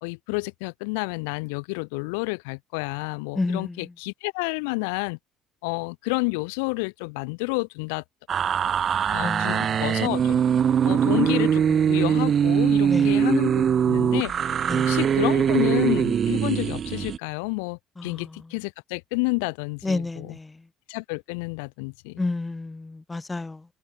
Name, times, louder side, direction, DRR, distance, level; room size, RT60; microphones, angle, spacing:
voice 1, 0.0-5.2 5.6-8.0 9.1-10.4 10.8-14.3 14.8-20.4 20.9-22.2, left 32 dB, 80° left, 1.1 m, -29 dB
voice 2, 3.3-3.9 9.2-9.7 12.9-13.1 14.7-14.9 18.0-18.3 19.8-20.6 22.2-23.6, left 3 dB, 20° left, 1.5 m, -30 dB
sound 1, 8.3-17.2, right 8 dB, 45° right, 1.0 m, -22 dB
hypercardioid pair, 65°, 0 cm